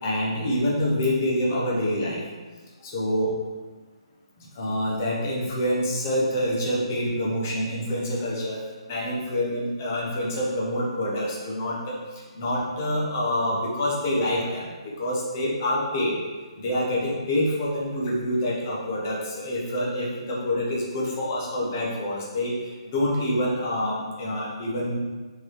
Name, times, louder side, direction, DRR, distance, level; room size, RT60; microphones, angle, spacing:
voice 1, 0.0-2.2 2.8-3.3 4.4-8.6 8.9-16.2 16.6-25.0, left 1 dB, 25° left, -4 dB, 1.2 m, -26 dB
5.8 x 4.1 x 4.7 m, 1.3 s
hypercardioid pair, 175°, 3 cm